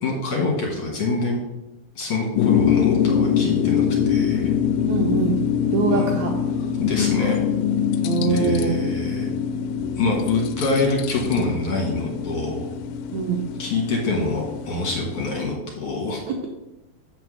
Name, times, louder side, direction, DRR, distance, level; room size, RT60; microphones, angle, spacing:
voice 1, 0.0-1.4 2.0-4.5 5.9-6.1 6.8-7.5 8.2-9.3 10.0-12.7 13.6-16.2, left 3 dB, 55° left, -1 dB, 2.0 m, -26 dB
sound 1, 2.4-15.5, left 8 dB, 85° left, 2.4 m, -24 dB
voice 2, 4.9-5.4 5.7-6.3 8.0-8.8 13.1-13.4 16.3-16.5, right 4 dB, 80° right, 1 dB, 1.6 m, -23 dB
7.7 x 4.5 x 6.3 m, 0.95 s
omnidirectional pair, 4.3 m